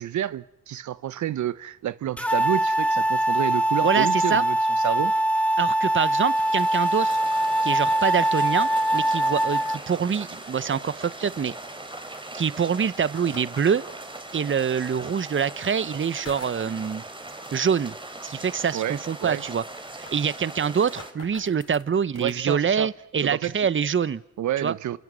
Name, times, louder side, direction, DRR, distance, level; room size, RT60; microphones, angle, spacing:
voice 1, 0.0-4.6 4.8-5.1 18.7-19.4 22.1-22.9 23.2-23.7 24.4-25.0, right 11 dB, 80° right, 1.0 m, -29 dB
sound 1, 2.2-9.8, right 1 dB, 5° left, 2.1 m, -23 dB
voice 2, 3.8-4.4 5.6-7.2 7.6-11.5 12.3-13.8 14.3-17.0 17.5-17.9 18.2-19.6 20.0-24.2 24.6-24.7, right 7 dB, 40° right, 1.0 m, -25 dB
sound 2, 5.9-21.1, right 2 dB, 15° right, 3.9 m, -40 dB
sound 3, 8.8-9.4 11.0-11.1 13.1-13.7 14.9-15.0 16.0-16.7 17.8-17.9 18.2-18.3 18.7-18.8 19.0-19.1 19.6-22.4, left 5 dB, 55° left, 4.0 m, -47 dB
28.5 x 26.5 x 7.6 m
cardioid pair, 65°, 29 cm